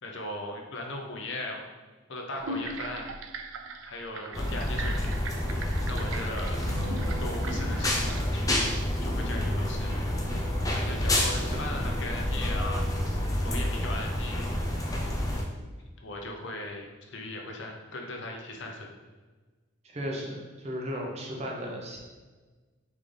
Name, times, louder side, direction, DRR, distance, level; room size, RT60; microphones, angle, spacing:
voice 1, 0.0-1.7 2.1-3.1 3.8-5.1 5.8-6.6 7.2-8.5 9.0-10.1 10.7-12.8 13.4-14.5 16.0-18.9, left 2 dB, 65° left, 2 dB, 0.7 m, -38 dB
sound 1, 2.4-8.2, right 2 dB, 75° right, 0.3 m, -39 dB
sound 2, 4.3-15.4, left 1 dB, 15° left, 0.5 m, -29 dB
voice 2, 19.9-22.0, equal, 30° right, -1 dB, 0.7 m, -35 dB
3.9 x 3.6 x 3.3 m, 1.3 s
head